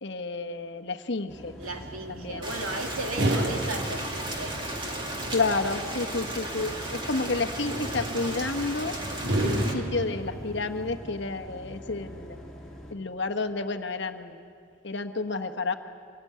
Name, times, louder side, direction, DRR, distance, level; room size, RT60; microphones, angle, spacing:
voice 1, 0.0-1.6 2.1-2.4 5.3-9.0 9.4-12.4 12.9-14.4 14.8-15.7, left 3 dB, 55° left, 6 dB, 1.1 m, -30 dB
sound 1, 1.3-12.9, equal, ahead, 2.9 m, -44 dB
sound 2, 1.6-10.9, right 1 dB, 50° right, 1.9 m, -33 dB
voice 2, 1.6-4.5, right 2 dB, 90° right, 3 dB, 2.4 m, -36 dB
Rain, 2.4-9.7, right 1 dB, 25° right, 2.2 m, -35 dB
25.0 x 18.5 x 9.4 m, 2.4 s
head